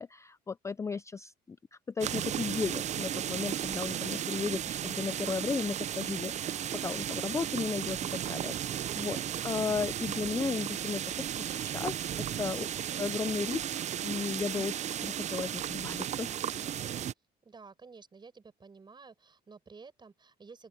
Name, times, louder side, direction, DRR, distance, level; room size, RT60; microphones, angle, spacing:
voice 1, 0.0-1.6 2.0-9.2 9.4-11.0 11.3-12.7 13.0-16.3, left 5 dB, 15° left, 0.4 m, -35 dB
sound 1, 2.0-17.1, right 10 dB, 45° right, 0.5 m, -35 dB
voice 2, 17.4-20.7, right 4 dB, 25° right, 7.2 m, -52 dB
open air
cardioid pair, 110°, 17 cm